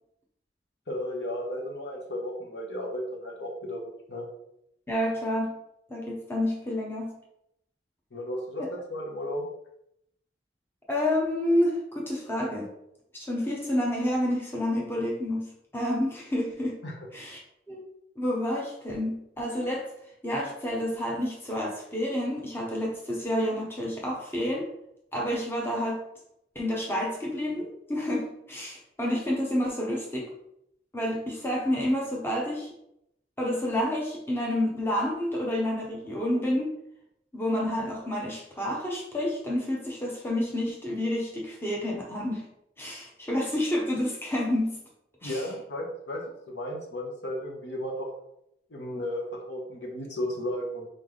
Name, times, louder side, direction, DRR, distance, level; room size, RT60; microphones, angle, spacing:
voice 1, 0.9-3.8 4.1-4.2 8.1-9.4 16.8-16.9 45.2-48.1 48.7-50.9, left 1 dB, 85° left, -1 dB, 1.1 m, -34 dB
voice 2, 4.9-5.6 5.9-7.1 8.6-8.7 10.9-12.7 13.1-16.8 17.1-17.4 17.7-17.8 18.2-19.9 20.2-24.7 25.1-26.0 26.5-30.3 30.9-32.7 33.4-36.7 37.3-42.5 42.8-44.8 45.2-45.5, left 1 dB, 15° left, -3 dB, 0.8 m, -29 dB
4.0 x 3.3 x 3.9 m, 0.78 s
head